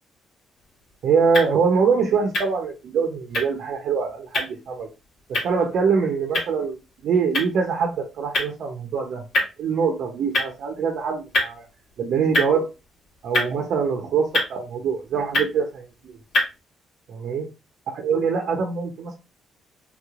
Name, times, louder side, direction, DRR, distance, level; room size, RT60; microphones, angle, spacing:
sound 1, 0.5-16.6, left 1 dB, 75° left, 2.2 m, -31 dB
voice 1, 1.0-4.9 5.3-11.7 12.0-12.7 13.2-16.2 17.1-17.5 18.0-19.1, right 5 dB, 70° right, 2 dB, 0.8 m, -24 dB
3.6 x 3.0 x 2.5 m, 0.27 s
cardioid pair, 90°, 0 cm